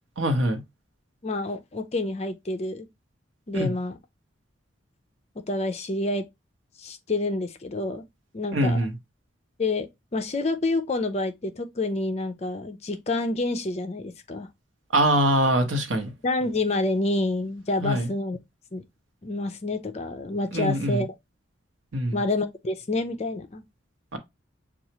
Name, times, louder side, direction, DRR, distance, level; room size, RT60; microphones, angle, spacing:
voice 1, 0.2-0.6 3.5-3.7 8.5-8.9 14.9-16.1 17.8-18.1 20.5-21.0 21.9-22.2 24.1-24.2, right 1 dB, 80° right, 0.9 m, -23 dB
voice 2, 1.2-2.9 3.5-4.0 5.5-6.3 6.8-8.1 8.3-8.9 9.6-14.5 16.2-18.4 18.7-18.8 19.2-21.1 22.1-23.6, left 2 dB, 35° left, 0.4 m, -28 dB
6.6 x 2.4 x 2.8 m
head